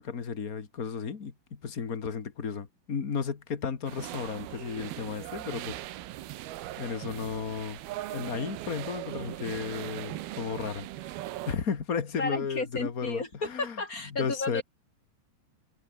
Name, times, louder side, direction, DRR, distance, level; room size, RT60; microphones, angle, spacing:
voice 1, 0.0-5.8 6.8-7.8 8.1-13.8 14.2-14.6, left 6 dB, 90° left, 0.7 m, -34 dB
sound 1, 3.8-11.6, right 15 dB, 70° right, 2.8 m, -39 dB
voice 2, 12.2-14.6, left 3 dB, 20° left, 4.5 m, -33 dB
omnidirectional pair, 4.8 m